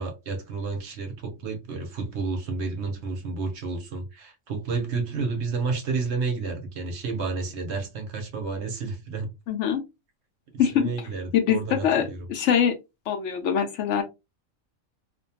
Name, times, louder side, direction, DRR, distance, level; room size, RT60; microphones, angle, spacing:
voice 1, 0.0-9.3 10.5-12.3, right 4 dB, 65° right, 0.9 m, -31 dB
voice 2, 9.5-9.8 10.6-10.9 11.3-12.7 13.1-14.0, left 8 dB, 70° left, 0.8 m, -23 dB
2.5 x 2.2 x 2.6 m
omnidirectional pair, 1.4 m